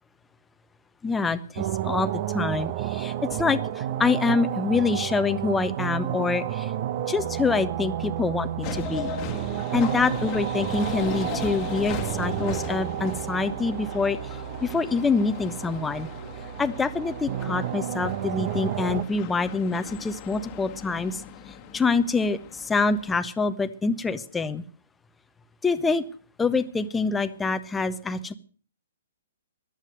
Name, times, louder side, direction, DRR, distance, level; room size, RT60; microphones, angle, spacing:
voice 1, 1.0-6.7 7.1-9.1 9.7-14.2 14.6-16.1 16.6-21.2 21.7-24.6 25.6-26.0 26.4-28.3, left 4 dB, 10° left, 10 dB, 0.8 m, -26 dB
sound 1, 1.6-19.0, right 11 dB, 40° right, 0.9 m, -31 dB
sound 2, 8.6-23.1, left 7 dB, 25° left, 1.5 m, -39 dB
15.0 x 11.5 x 6.5 m, 0.41 s
figure-of-eight pair, 120°, 0 cm